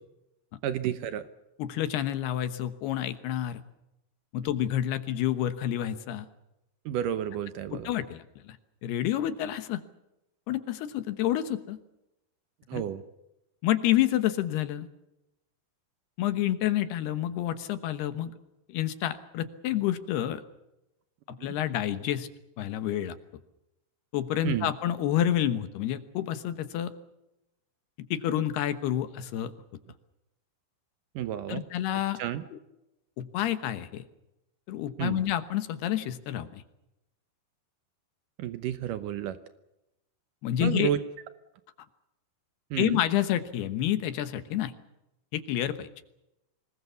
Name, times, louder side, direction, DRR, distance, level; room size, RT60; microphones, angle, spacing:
voice 1, 0.6-1.3 6.9-7.9 12.7-13.0 21.4-21.5 24.4-24.7 31.2-31.6 32.2-32.4 35.0-35.2 38.4-39.4 40.6-41.0 42.7-43.0, right 11 dB, 85° right, 11 dB, 1.8 m, -31 dB
voice 2, 1.6-3.6 4.3-6.3 7.7-8.6 8.8-9.8 10.5-11.8 12.7-12.8 13.6-14.9 16.2-18.3 18.7-20.4 21.3-22.3 22.6-23.2 24.1-26.9 28.1-29.5 31.5-32.2 32.5-32.6 33.2-34.0 34.7-36.6 40.4-40.9 42.8-44.7 45.3-45.9, left 12 dB, 70° left, 11 dB, 3.0 m, -29 dB
25.5 x 20.0 x 7.0 m, 0.89 s
omnidirectional pair, 5.2 m